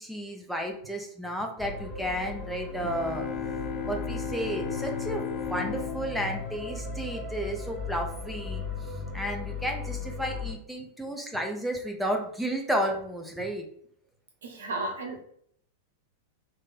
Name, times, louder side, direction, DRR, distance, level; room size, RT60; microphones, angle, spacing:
voice 1, 0.0-3.3 3.8-8.6 9.1-13.6, equal, ahead, 2 dB, 0.7 m, -32 dB
sound 1, 1.6-10.5, left 3 dB, 20° left, 1.1 m, -37 dB
sound 2, 2.8-7.5, left 8 dB, 40° left, 0.4 m, -36 dB
voice 2, 14.4-15.2, right 2 dB, 65° right, 2 dB, 0.8 m, -34 dB
3.2 x 2.2 x 4.1 m, 0.65 s
figure-of-eight pair, 90°, 0 cm